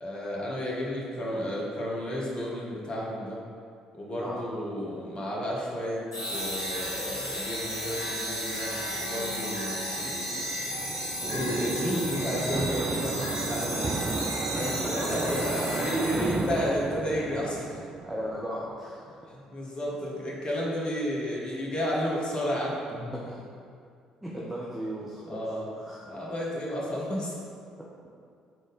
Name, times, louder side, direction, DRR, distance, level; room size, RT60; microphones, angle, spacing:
voice 1, 0.0-3.4 4.0-6.0 6.3-9.8 11.3-14.0 14.3-17.8 19.3-22.8 25.3-25.7 26.0-27.3, equal, 35° left, -4 dB, 1.5 m, -32 dB
sound 1, 6.1-16.6, equal, 90° left, 0.7 m, -33 dB
sound 2, 10.0-18.8, right 4 dB, 30° right, 0.4 m, -34 dB
voice 2, 13.6-14.1 14.5-14.6 14.8-15.3 16.2-16.4 18.0-19.1 22.9-23.4 24.2-25.4 25.7-26.0, equal, 5° right, -6 dB, 1.1 m, -37 dB
6.1 x 4.0 x 5.2 m, 2.3 s
figure-of-eight pair, 50°, 3 cm